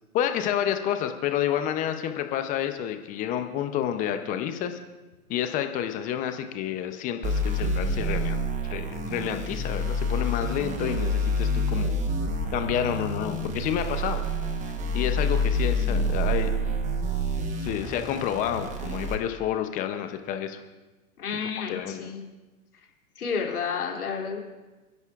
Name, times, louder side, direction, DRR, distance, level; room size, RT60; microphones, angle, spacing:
voice 1, 0.1-4.8 5.3-8.4 8.7-12.0 12.5-14.2 14.9-16.5 17.6-20.6 21.7-22.1, left 10 dB, 20° left, 7 dB, 0.6 m, -29 dB
sound 1, 7.2-19.1, equal, 15° right, 1.1 m, -28 dB
voice 2, 21.2-22.2 23.1-24.4, left 6 dB, 85° left, 0 dB, 3.1 m, -31 dB
29.5 x 10.5 x 2.4 m, 1.2 s
hypercardioid pair, 135°, 44 cm